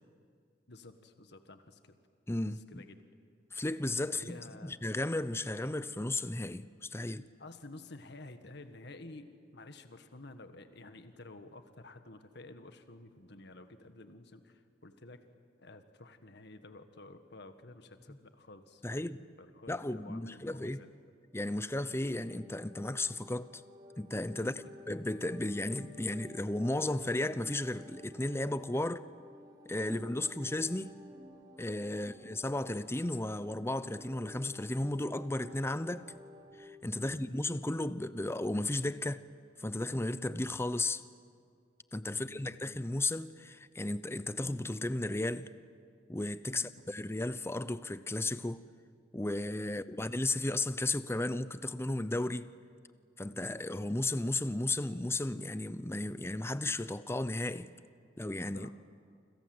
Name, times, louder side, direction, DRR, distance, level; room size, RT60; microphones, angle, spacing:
voice 1, 0.7-2.0 2.5-3.0 4.1-4.8 7.4-15.2 15.6-20.9 24.4-24.7 29.8-30.2 31.9-32.2 37.0-37.2 42.1-42.6 46.5-46.7 49.7-50.0 53.3-53.5 58.5-58.7, left 2 dB, 65° left, 1.7 m, -52 dB
voice 2, 2.3-2.8 3.5-4.4 4.6-7.3 18.1-18.2 18.8-19.2 19.7-20.8 21.3-23.6 24.0-24.5 24.9-29.0 29.7-31.0 31.6-36.1 36.6-39.2 39.6-41.0 41.9-45.5 46.1-48.6 49.1-52.5 53.2-57.7 58.2-58.7, left 2 dB, 15° left, 0.7 m, -34 dB
sound 1, 21.6-36.7, left 1 dB, 20° right, 3.4 m, -53 dB
29.0 x 26.0 x 8.0 m
head